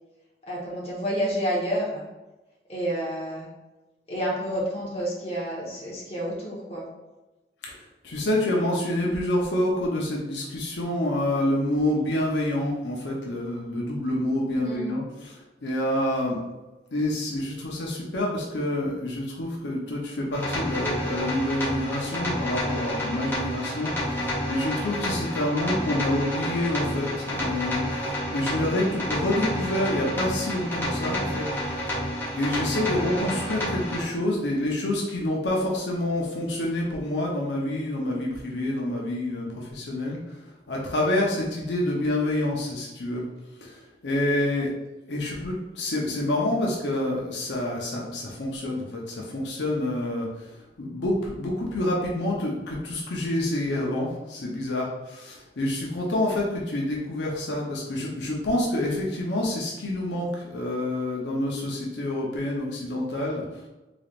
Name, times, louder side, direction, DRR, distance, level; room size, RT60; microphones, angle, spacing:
voice 1, 0.5-2.0 2.7-3.5 4.1-6.8 14.6-15.0, equal, 35° left, -5 dB, 1.1 m, -29 dB
voice 2, 7.6-15.4 15.6-16.4 16.9-31.4 31.7-31.8 32.3-40.3 40.7-43.2 43.6-44.7 45.1-63.5, left 1 dB, 85° left, -3 dB, 0.7 m, -27 dB
sound 1, 20.3-34.0, equal, 10° left, 1.1 m, -29 dB
3.9 x 3.4 x 2.4 m, 1.1 s
head